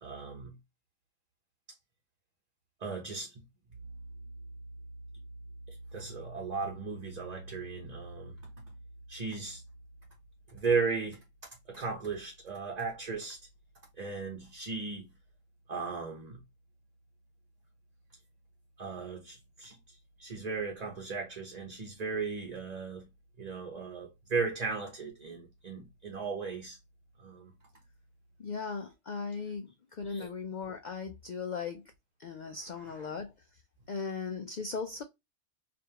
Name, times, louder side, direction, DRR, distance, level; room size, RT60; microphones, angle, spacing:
voice 1, 0.0-0.6 2.8-3.3 5.7-8.4 9.1-9.6 10.5-11.2 11.7-13.4 14.0-15.1 15.7-16.4 18.8-19.8 20.2-23.1 23.4-26.8 27.2-27.5 30.1-30.3, right 4 dB, 35° right, 0.9 m, -36 dB
voice 2, 28.4-31.8 32.2-33.3 33.9-35.0, left 5 dB, 80° left, 0.4 m, -38 dB
5.1 x 2.5 x 2.8 m
omnidirectional pair, 1.3 m